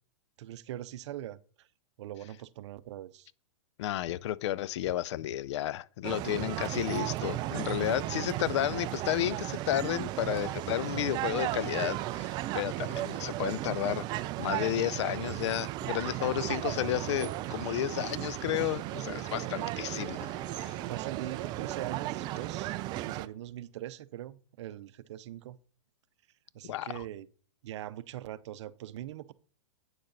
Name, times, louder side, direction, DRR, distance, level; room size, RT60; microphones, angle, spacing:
voice 1, 0.4-1.7 2.0-3.3 19.4-19.8 20.9-25.6 26.5-27.3 27.6-29.3, right 13 dB, 65° right, 0.6 m, -42 dB
voice 2, 3.8-20.2 20.5-20.8 26.6-27.0, left 13 dB, 60° left, 0.5 m, -32 dB
sound 1, 6.0-23.3, right 16 dB, 25° right, 0.3 m, -35 dB
sound 2, 16.7-23.3, left 3 dB, 20° left, 1.6 m, -56 dB
8.9 x 6.5 x 4.0 m
hypercardioid pair, 140°, 16 cm